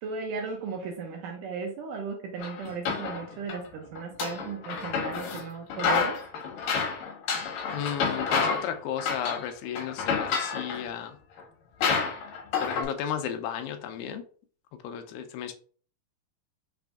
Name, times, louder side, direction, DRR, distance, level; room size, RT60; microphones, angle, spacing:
voice 1, 0.0-6.2, right 4 dB, 80° right, 2 dB, 2.0 m, -36 dB
sound 1, 2.4-3.6 4.0-5.4 5.7-8.7 9.0-9.5 9.8-10.8 11.4-11.5 11.8-12.8, left 5 dB, 70° left, 2.8 m, -29 dB
voice 2, 7.7-11.2 12.6-14.2 14.8-15.5, left 9 dB, 85° left, 7 dB, 2.4 m, -34 dB
6.0 x 2.6 x 3.4 m, 0.43 s
omnidirectional pair, 4.3 m